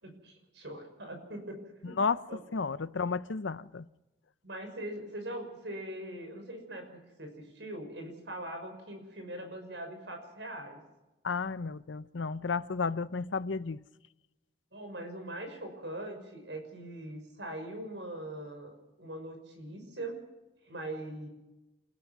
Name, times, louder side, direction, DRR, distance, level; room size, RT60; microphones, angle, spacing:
voice 1, 0.0-2.0 2.3-2.4 4.4-10.8 14.7-20.2 20.6-21.3, right 1 dB, 75° right, 6.0 m, -42 dB
voice 2, 2.5-3.9 11.2-13.8, left 4 dB, 90° left, 0.7 m, -32 dB
28.5 x 16.0 x 6.2 m
head